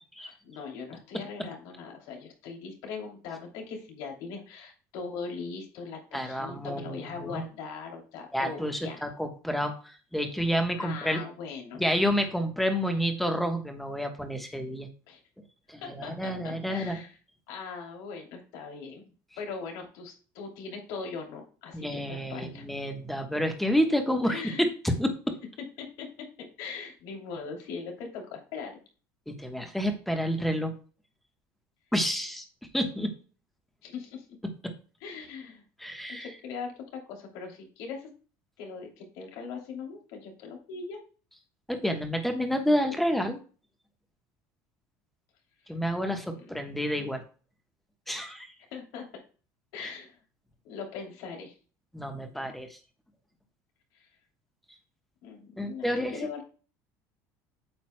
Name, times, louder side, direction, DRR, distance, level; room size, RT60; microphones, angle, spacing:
voice 1, 0.2-9.0 10.8-11.8 15.1-15.2 15.8-17.1 17.5-22.6 24.3-24.7 25.8-26.1 26.4-28.8 33.8-34.2 35.0-35.6 36.2-38.1 38.6-41.0 46.3-46.5 48.7-49.0 49.7-50.2 50.6-51.5 53.9-54.1 55.2-55.9 56.1-56.4, left 5 dB, 75° left, 2 dB, 2.9 m, -40 dB
voice 2, 6.1-7.4 8.3-11.2 11.8-14.9 15.7-17.0 21.7-24.7 25.0-25.4 29.3-30.7 31.9-32.4 32.7-33.1 34.6-34.7 35.8-36.3 41.7-43.4 45.7-47.2 48.1-48.5 49.8-49.9 51.9-52.8 55.6-56.2, equal, ahead, 5 dB, 1.2 m, -29 dB
8.8 x 8.0 x 2.2 m, 0.37 s
cardioid pair, 165°, 7 cm